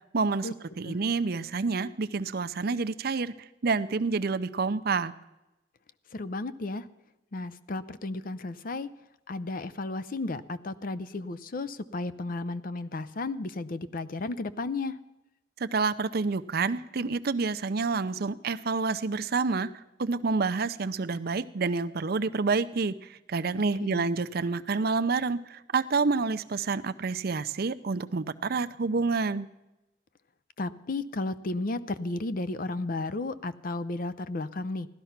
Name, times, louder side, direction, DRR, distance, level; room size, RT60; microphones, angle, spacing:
voice 1, 0.1-0.5 0.8-5.1 15.6-19.7 20.0-29.5, right 4 dB, 60° right, 13 dB, 0.6 m, -28 dB
voice 2, 6.1-6.9 7.3-8.9 9.3-15.0 23.8-24.1 30.6-34.9, left 2 dB, 50° left, 13 dB, 0.6 m, -33 dB
16.0 x 12.5 x 5.8 m, 0.95 s
head